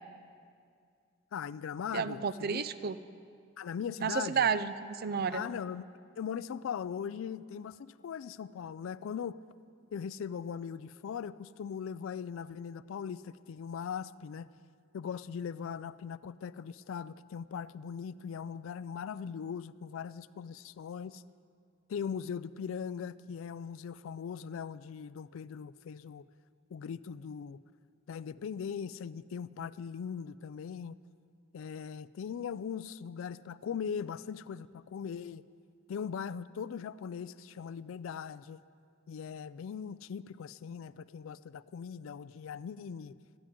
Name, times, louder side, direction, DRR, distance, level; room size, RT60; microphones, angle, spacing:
voice 1, 1.3-2.6 3.6-4.5 5.3-5.9 6.2-9.4 9.9-14.5 14.9-21.2 21.9-26.3 26.7-27.6 28.1-31.0 31.5-35.4 35.9-38.6 39.1-43.1, left 7 dB, 70° left, 17 dB, 0.3 m, -40 dB
voice 2, 1.9-3.0 4.0-5.4, right 6 dB, 45° right, 14 dB, 0.4 m, -31 dB
25.0 x 9.9 x 3.7 m, 2.2 s
head